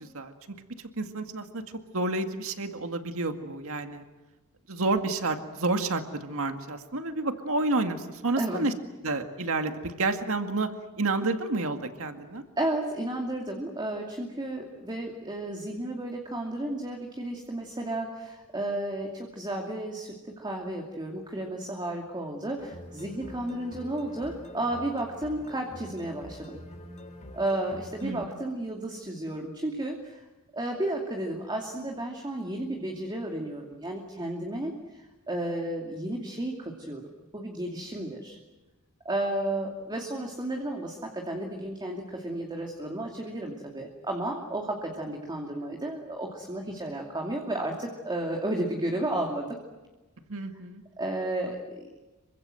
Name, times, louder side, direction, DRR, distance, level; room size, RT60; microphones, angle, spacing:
voice 1, 0.0-1.6 1.9-4.1 4.7-8.7 9.0-10.7 11.0-12.4 28.0-28.3 50.3-50.8, right 2 dB, 65° right, 6 dB, 2.1 m, -30 dB
voice 2, 12.6-26.6 27.3-30.2 30.5-37.0 37.3-38.4 39.0-49.5 51.0-52.0, right 1 dB, 20° right, 1 dB, 2.6 m, -33 dB
sound 1, 22.6-28.3, left 1 dB, 35° left, 3.8 m, -46 dB
27.5 x 24.0 x 7.8 m, 1.2 s
head